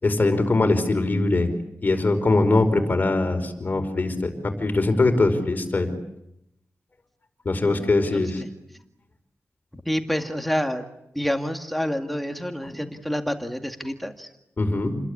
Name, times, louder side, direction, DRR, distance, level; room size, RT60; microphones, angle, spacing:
voice 1, 0.0-1.5 1.8-5.9 7.5-8.4 12.6-12.7 14.6-15.0, left 2 dB, 35° left, 5 dB, 5.1 m, -22 dB
voice 2, 7.6-8.5 9.7-10.8 11.1-14.3, equal, ahead, 4 dB, 2.0 m, -28 dB
29.5 x 21.5 x 8.7 m, 0.83 s
wide cardioid pair, 145°, 5 cm